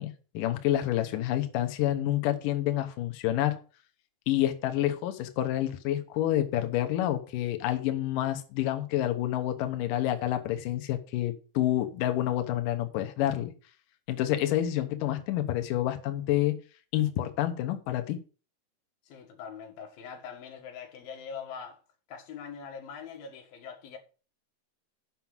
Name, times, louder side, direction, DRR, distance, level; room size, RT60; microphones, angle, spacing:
voice 1, 0.0-3.6 4.3-13.5 14.1-16.5 16.9-18.2, left 13 dB, 90° left, 1.8 m, -28 dB
voice 2, 19.1-21.8 22.1-24.0, left 6 dB, 60° left, 3.3 m, -43 dB
7.7 x 5.8 x 7.2 m
omnidirectional pair, 5.3 m